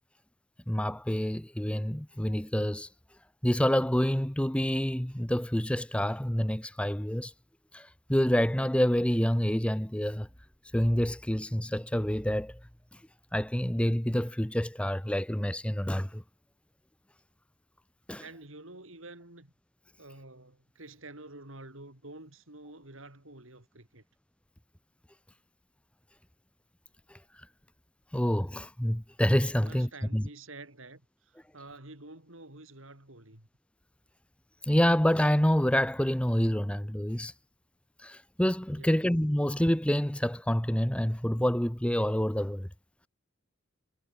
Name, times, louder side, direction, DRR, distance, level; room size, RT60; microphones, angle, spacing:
voice 1, 0.7-2.9 3.4-7.3 7.7-10.3 10.7-12.6 13.3-16.2 18.1-18.2 27.1-27.2 28.1-30.2 34.6-37.3 38.0-42.7, equal, 5° left, 0.7 m, -27 dB
voice 2, 18.2-19.5 20.0-24.0 29.6-33.5 38.7-39.1, right 2 dB, 65° right, 4.2 m, -49 dB
head